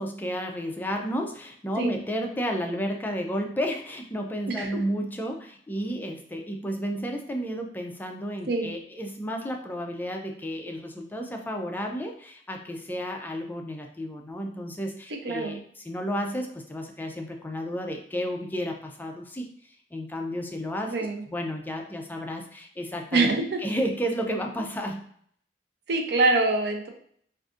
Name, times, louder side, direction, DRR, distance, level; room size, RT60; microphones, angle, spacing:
voice 1, 0.0-19.5 19.9-20.9 21.3-23.3 23.6-25.0, equal, 10° left, 2 dB, 0.4 m, -32 dB
voice 2, 15.2-15.6 20.9-21.2 23.1-23.6 25.9-26.9, right 3 dB, 65° right, 4 dB, 0.5 m, -24 dB
3.6 x 2.5 x 2.5 m, 0.62 s
head